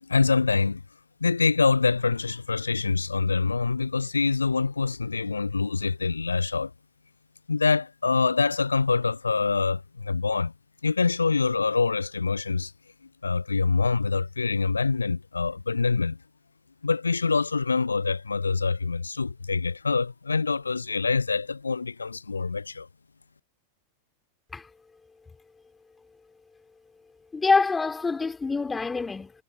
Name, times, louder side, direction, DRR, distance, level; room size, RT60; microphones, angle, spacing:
voice 1, 0.1-0.8 1.2-6.7 7.5-10.5 10.8-12.7 13.2-16.2 16.8-22.9, left 4 dB, 75° left, 0.6 m, -25 dB
voice 2, 27.3-29.3, left 4 dB, 10° left, 3.9 m, -25 dB
figure-of-eight pair, 90°, 0 cm